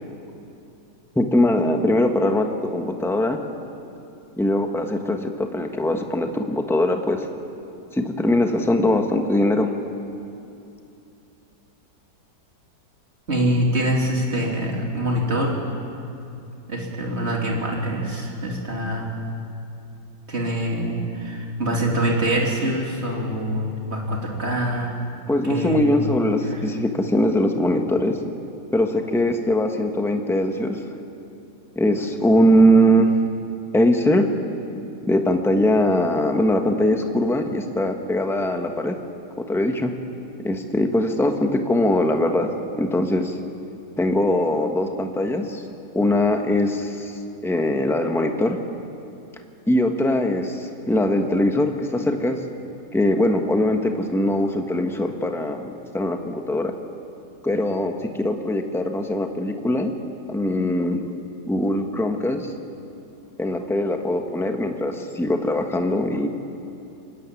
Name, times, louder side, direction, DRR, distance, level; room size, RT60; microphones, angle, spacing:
voice 1, 1.1-3.4 4.4-7.3 7.9-9.7 25.3-28.2 28.7-30.8 31.7-33.2 33.7-34.3 35.0-39.0 39.4-39.9 40.4-42.5 42.8-43.4 44.0-45.6 45.9-48.6 49.7-52.4 52.9-56.7 57.4-59.9 60.3-61.0 61.4-62.5 63.4-66.3, left 1 dB, ahead, 4 dB, 1.0 m, -21 dB
voice 2, 13.3-15.5 16.7-19.1 20.3-24.9 25.5-25.9 26.5-26.6, right 1 dB, 35° right, -1 dB, 3.3 m, -24 dB
24.5 x 13.5 x 9.8 m, 2.8 s
omnidirectional pair, 1.9 m